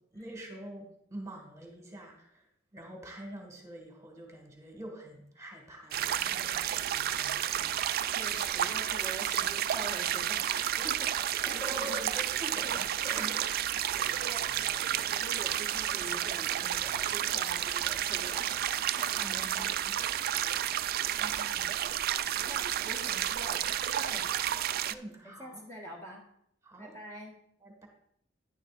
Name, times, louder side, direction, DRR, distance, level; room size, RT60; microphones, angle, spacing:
voice 1, 0.1-7.9 10.8-13.4 19.2-20.0 21.2-21.6 24.9-25.6 26.6-27.0 27.6-27.9, right 1 dB, 15° right, 1 dB, 1.8 m, -46 dB
sound 1, 5.9-24.9, right 11 dB, 50° right, 0.3 m, -31 dB
voice 2, 8.0-12.0 12.6-12.8 13.3-18.6 18.9-19.7 20.3-21.0 21.5-21.7 22.5-24.4 25.2-26.2 26.8-27.3, equal, 15° left, -3 dB, 1.4 m, -45 dB
11.0 x 10.0 x 2.5 m, 0.70 s
head